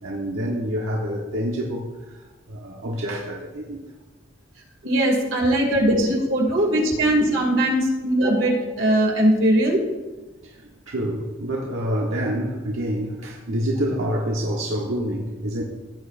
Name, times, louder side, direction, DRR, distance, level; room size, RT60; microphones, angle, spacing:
voice 1, 0.0-3.8 5.9-6.0 7.0-7.1 10.4-15.6, equal, 85° right, -2 dB, 1.4 m, -27 dB
voice 2, 4.8-9.8, right 1 dB, 70° right, -1 dB, 2.8 m, -20 dB
16.5 x 8.8 x 2.7 m, 1.2 s
head